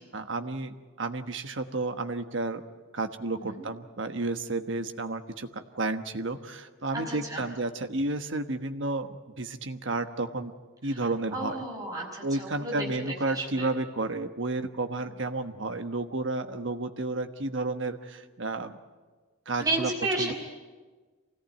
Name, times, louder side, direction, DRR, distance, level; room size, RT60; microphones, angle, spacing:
voice 1, 0.0-2.6 2.9-10.5 10.8-11.6 12.2-18.8 19.5-19.9 20.2-20.3, right 2 dB, 65° right, 8 dB, 1.3 m, -32 dB
voice 2, 6.9-7.4 10.9-11.0 11.3-12.9 13.3-13.7 19.6-20.3, right 2 dB, 15° right, -2 dB, 5.5 m, -32 dB
24.5 x 17.5 x 9.1 m, 1.4 s
head